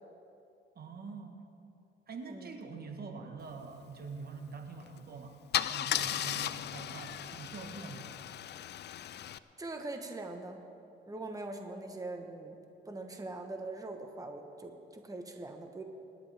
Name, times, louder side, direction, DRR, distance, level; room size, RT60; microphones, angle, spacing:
voice 1, 0.7-1.5 2.1-8.1, right 4 dB, 50° right, 4 dB, 1.5 m, -45 dB
Car / Engine starting / Idling, 4.8-5.0 5.5-9.4, left 11 dB, 60° left, 0.5 m, -36 dB
voice 2, 9.6-10.6 11.1-12.6 12.8-15.8, right 2 dB, 15° right, 4 dB, 1.3 m, -42 dB
25.0 x 11.0 x 3.5 m, 2.6 s
cardioid pair, 90°, 20 cm